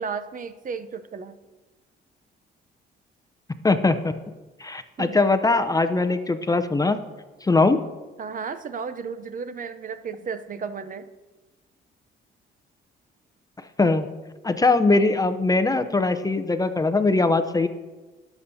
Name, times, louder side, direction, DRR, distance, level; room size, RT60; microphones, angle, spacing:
voice 1, 0.0-1.4 5.0-5.2 7.7-7.8 8.2-11.1, right 5 dB, 45° right, 12 dB, 0.6 m, -33 dB
voice 2, 3.6-4.1 4.6-7.0 7.4-7.8 13.8-14.1 14.4-17.7, left 3 dB, 20° left, 10 dB, 0.6 m, -21 dB
17.5 x 7.1 x 2.7 m, 1.2 s
cardioid pair, 90°, 20 cm